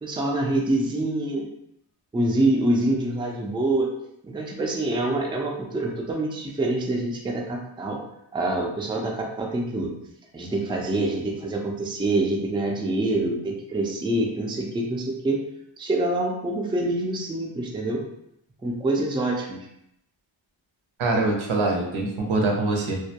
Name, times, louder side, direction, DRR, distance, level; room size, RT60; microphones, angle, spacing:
voice 1, 0.0-1.5 2.1-3.9 4.2-8.0 8.3-9.9 10.3-15.4 15.8-18.0 18.6-19.6, right 2 dB, 10° right, 0 dB, 0.3 m, -26 dB
voice 2, 21.0-23.0, right 2 dB, 90° right, 0 dB, 0.7 m, -24 dB
2.2 x 2.1 x 2.8 m, 0.77 s
wide cardioid pair, 80°, 46 cm